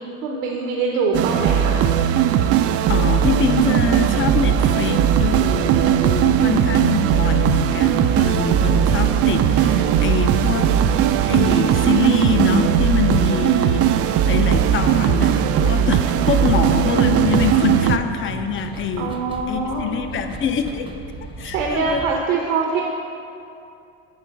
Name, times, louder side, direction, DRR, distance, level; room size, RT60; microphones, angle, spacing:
voice 1, 0.2-1.8 19.0-20.0 21.4-22.8, right 4 dB, 85° right, 0 dB, 1.0 m, -23 dB
sound 1, 1.1-18.0, right 9 dB, 40° right, 0.4 m, -18 dB
voice 2, 2.9-10.7 11.2-19.2 19.5-20.9 21.4-22.0, left 6 dB, 30° left, 7 dB, 0.6 m, -24 dB
sound 2, 2.9-22.2, right 2 dB, 15° right, 0.7 m, -36 dB
7.8 x 4.5 x 6.9 m, 2.6 s
supercardioid pair, 90°, 39 cm